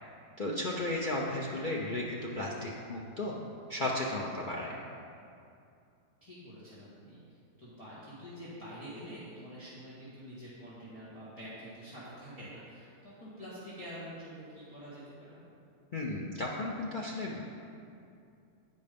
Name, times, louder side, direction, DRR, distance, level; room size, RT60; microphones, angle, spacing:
voice 1, 0.4-3.3 3.7-4.8 15.9-17.4, left 1 dB, 60° left, -3 dB, 0.5 m, -34 dB
voice 2, 6.2-15.4, equal, 20° left, -12 dB, 1.8 m, -47 dB
8.9 x 5.2 x 5.1 m, 2.5 s
omnidirectional pair, 1.7 m